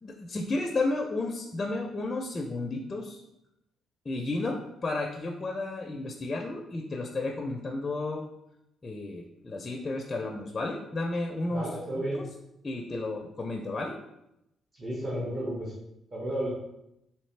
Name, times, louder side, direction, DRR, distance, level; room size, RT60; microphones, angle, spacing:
voice 1, 0.0-3.2 4.1-8.3 8.8-12.2 12.6-13.9, left 2 dB, 30° left, 2 dB, 0.4 m, -32 dB
voice 2, 11.5-12.2 14.8-15.7 16.1-16.5, right 1 dB, 35° right, -6 dB, 1.3 m, -32 dB
3.9 x 3.0 x 3.2 m, 0.85 s
cardioid pair, 90°, 0 cm